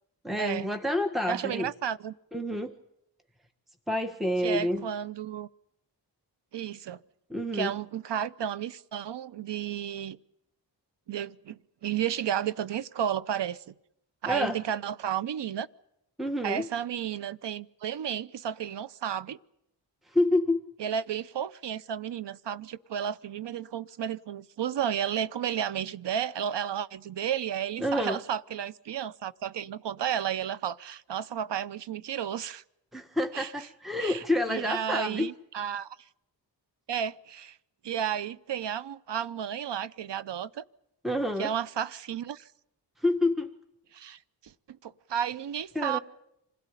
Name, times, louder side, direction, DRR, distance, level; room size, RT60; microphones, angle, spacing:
voice 1, 0.2-1.7 2.3-2.7 3.9-4.8 7.3-7.7 14.3-14.6 16.2-16.7 20.1-20.6 27.8-28.2 32.9-35.3 41.0-41.5 43.0-43.5 45.7-46.0, left 1 dB, ahead, 7 dB, 1.4 m, -28 dB
voice 2, 1.3-2.1 4.4-5.5 6.5-7.0 7.5-10.2 11.1-13.7 14.2-15.7 16.4-19.4 20.8-32.6 33.3-33.5 34.0-36.0 36.9-37.6 37.8-40.6 41.4-42.5 43.9-46.0, right 9 dB, 75° right, 17 dB, 0.9 m, -32 dB
26.5 x 17.0 x 9.9 m, 0.81 s
cardioid pair, 75°, 42 cm